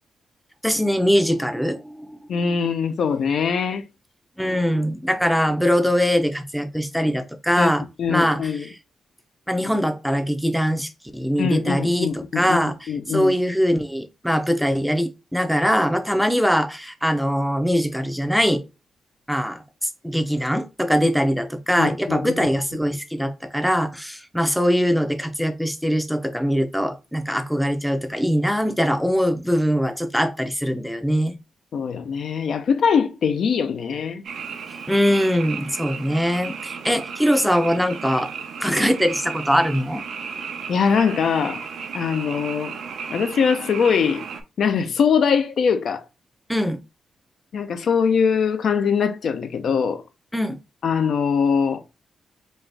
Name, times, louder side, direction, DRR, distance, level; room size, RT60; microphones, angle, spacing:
voice 1, 0.6-2.2 4.4-7.8 8.1-8.8 9.5-18.6 19.3-31.3 34.9-38.3 38.6-40.0 46.5-46.8 50.3-50.6, equal, ahead, 0.6 m, -22 dB
voice 2, 2.3-3.8 7.6-7.7 8.0-8.6 11.4-12.6 12.9-13.3 21.8-22.3 31.7-34.2 40.7-41.6 41.9-42.7 43.1-44.2 44.6-46.0 47.5-50.0 50.8-51.8, left 6 dB, 65° left, 0.5 m, -22 dB
Frog, 34.2-44.4, right 6 dB, 75° right, 0.7 m, -34 dB
4.2 x 2.4 x 3.3 m
cardioid pair, 100°, 0 cm